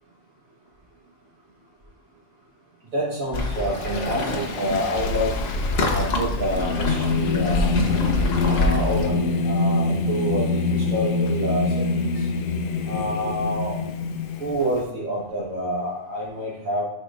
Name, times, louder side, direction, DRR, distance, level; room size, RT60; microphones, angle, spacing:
voice 1, 2.9-5.4 5.9-7.8 8.4-12.3 12.9-13.7 14.4-16.8, equal, 85° right, -6 dB, 1.8 m, -27 dB
Waves surf, 3.3-9.1, left 2 dB, 50° left, 1.3 m, -26 dB
Singing, 4.4-14.8, left 4 dB, 80° left, 1.0 m, -25 dB
11.0 x 4.5 x 2.5 m, 0.86 s
omnidirectional pair, 1.4 m